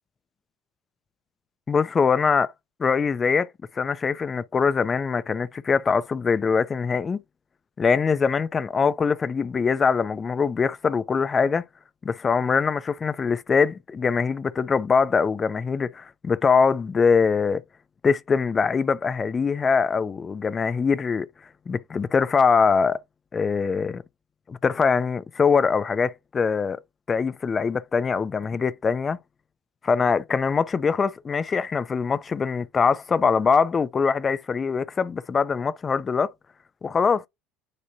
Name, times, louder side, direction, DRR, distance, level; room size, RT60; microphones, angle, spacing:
voice 1, 1.7-2.5 2.8-3.5 3.7-7.2 7.8-11.6 12.0-17.6 18.0-21.3 21.7-23.0 23.3-24.0 24.5-26.8 27.1-29.2 29.8-36.3 36.8-37.2, left 5 dB, 30° left, 0.6 m, -23 dB
9.9 x 4.1 x 2.4 m
hypercardioid pair, 75°, 0 cm